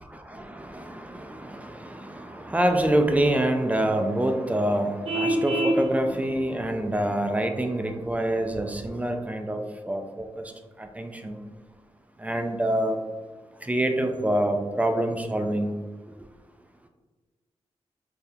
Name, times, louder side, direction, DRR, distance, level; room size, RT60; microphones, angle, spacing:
voice 1, 0.0-10.5 10.8-11.4 12.2-13.0 13.6-15.8, right 1 dB, 10° right, 5 dB, 0.3 m, -26 dB
Vehicle horn car horn honking, 5.0-5.8, right 1 dB, 65° right, 0.5 m, -24 dB
3.4 x 2.6 x 2.3 m, 1.3 s
wide cardioid pair, 75°, 11 cm